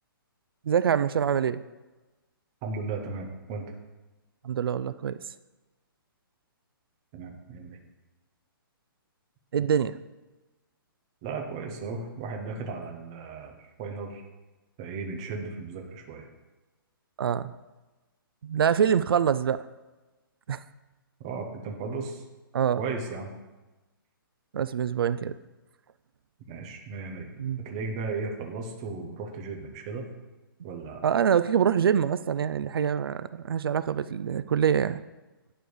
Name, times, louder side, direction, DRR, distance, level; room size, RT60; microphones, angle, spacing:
voice 1, 0.6-1.6 4.4-5.2 9.5-10.0 17.2-17.5 18.4-19.6 20.5-20.6 22.5-22.8 24.5-25.3 27.4-27.7 31.0-35.0, right 8 dB, 75° right, 14 dB, 0.4 m, -25 dB
voice 2, 2.6-3.6 7.1-7.8 11.2-14.2 14.8-16.3 21.2-22.2 22.8-23.3 26.5-27.3 27.6-30.1 30.6-31.0, right 4 dB, 15° right, 2 dB, 0.5 m, -35 dB
9.2 x 3.4 x 6.1 m, 1.1 s
hypercardioid pair, 180°, 12 cm